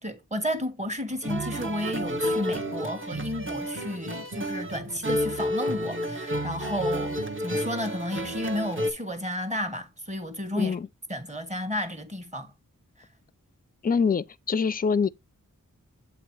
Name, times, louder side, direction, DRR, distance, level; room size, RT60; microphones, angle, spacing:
voice 1, 0.0-10.7 11.1-12.5, left 1 dB, 20° right, 1.3 m, -32 dB
sound 1, 1.2-8.9, equal, 40° right, 1.0 m, -30 dB
voice 2, 10.5-10.9 13.8-15.1, left 5 dB, 30° left, 0.4 m, -25 dB
7.8 x 3.0 x 4.6 m
wide cardioid pair, 50°, 33 cm